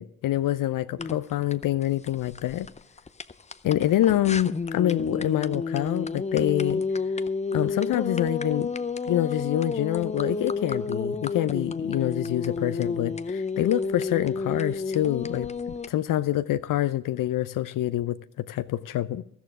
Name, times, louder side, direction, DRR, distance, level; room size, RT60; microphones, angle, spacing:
voice 1, 0.0-2.7 3.6-6.8 7.5-8.7 9.0-19.2, left 13 dB, 55° left, 0.7 m, -26 dB
sound 1, 1.0-15.9, left 4 dB, 15° left, 0.7 m, -30 dB
14.0 x 14.0 x 3.6 m
hypercardioid pair, 45°, 40 cm